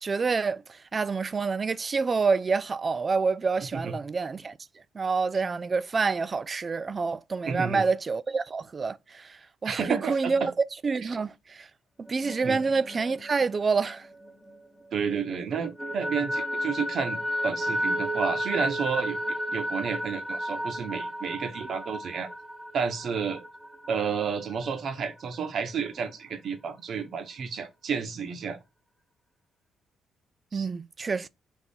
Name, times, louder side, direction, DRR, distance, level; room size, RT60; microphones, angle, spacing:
voice 1, 0.0-4.6 4.9-10.5 10.8-11.7 12.1-14.1 30.5-31.3, right 4 dB, 35° right, 0.3 m, -27 dB
voice 2, 7.5-7.9 9.6-10.5 12.4-12.6 14.9-22.3 22.7-23.4 23.9-28.6 30.5-30.7, right 6 dB, 60° right, 1.0 m, -31 dB
sound 1, 12.1-14.9 15.3-24.7, equal, ahead, 1.0 m, -33 dB
3.6 x 2.9 x 4.1 m
cardioid pair, 90°, 0 cm